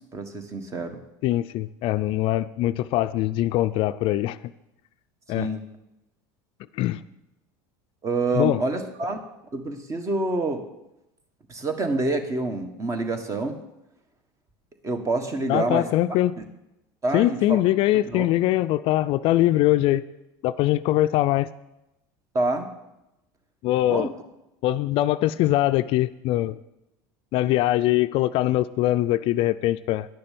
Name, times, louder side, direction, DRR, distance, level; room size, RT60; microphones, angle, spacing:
voice 1, 0.1-1.0 5.3-5.6 8.0-9.2 9.5-10.6 11.5-13.6 14.8-15.9 17.0-17.6 18.1-18.3 22.3-22.7 23.9-24.1, right 2 dB, 30° right, 7 dB, 1.6 m, -27 dB
voice 2, 1.2-4.4 5.3-5.5 6.8-7.0 8.3-8.6 15.5-16.4 17.1-20.0 20.4-21.5 23.6-24.1 24.6-26.5 27.3-30.1, left 15 dB, 55° left, 13 dB, 0.4 m, -22 dB
10.5 x 6.7 x 7.7 m, 0.91 s
supercardioid pair, 100°, 11 cm